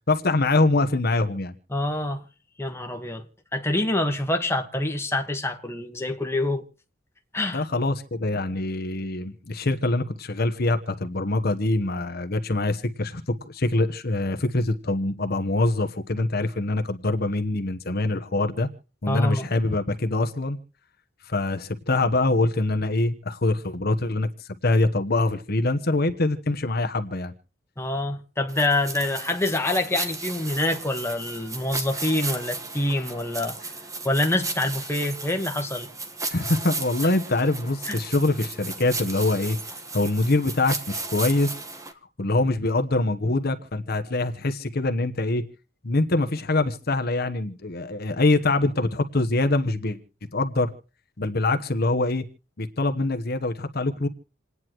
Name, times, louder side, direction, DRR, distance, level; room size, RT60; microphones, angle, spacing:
voice 1, 0.1-1.5 7.5-18.7 19.0-20.6 21.2-27.3 36.3-39.6 39.9-41.5 42.2-45.4 45.8-50.0 50.3-50.7 51.2-52.2 52.6-54.1, left 2 dB, 55° left, 1.1 m, -24 dB
voice 2, 1.7-2.2 2.6-3.2 3.5-6.6 7.3-7.6 19.1-19.5 27.8-33.7 34.0-35.9 37.9-38.0, left 1 dB, 15° left, 1.4 m, -26 dB
sound 1, 28.5-41.9, right 3 dB, 20° right, 1.4 m, -35 dB
28.5 x 9.6 x 3.1 m
head